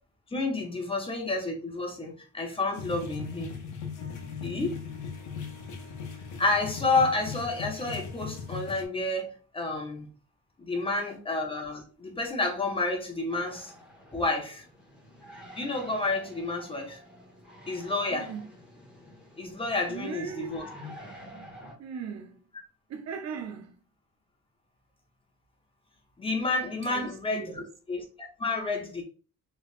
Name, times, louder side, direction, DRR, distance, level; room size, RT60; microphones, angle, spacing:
voice 1, 0.3-3.5 4.4-4.8 6.4-10.1 10.6-13.7 14.1-14.6 15.5-17.0 17.7-18.3 19.4-20.6 26.2-29.0, left 3 dB, 15° left, 0.7 m, -30 dB
sound 1, 2.7-8.9, left 6 dB, 65° left, 0.8 m, -38 dB
sound 2, 13.3-21.7, left 1 dB, 5° right, 1.3 m, -49 dB
voice 2, 18.1-18.5 19.9-20.6 21.8-22.4 22.9-23.8 26.8-27.7, right 6 dB, 55° right, 0.7 m, -38 dB
3.2 x 3.1 x 2.4 m
cardioid pair, 130°, 32 cm